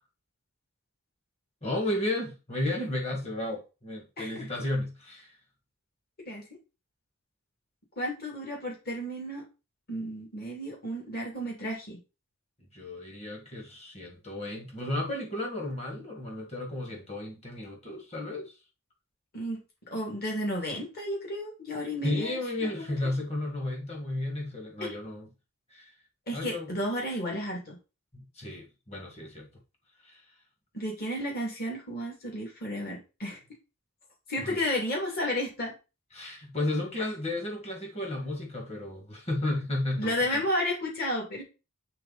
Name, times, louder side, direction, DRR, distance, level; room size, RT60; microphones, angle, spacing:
voice 1, 1.6-5.3 12.7-18.5 22.0-25.3 25.7-25.9 26.3-26.7 28.1-29.5 30.0-30.2 34.4-34.6 36.1-40.4, left 1 dB, 30° left, 2.0 m, -33 dB
voice 2, 8.0-9.4 9.9-12.0 19.3-19.6 19.9-22.9 24.8-25.0 26.3-27.8 30.7-33.4 34.3-35.7 40.0-41.4, left 1 dB, 45° left, 2.7 m, -32 dB
8.3 x 3.9 x 4.2 m
head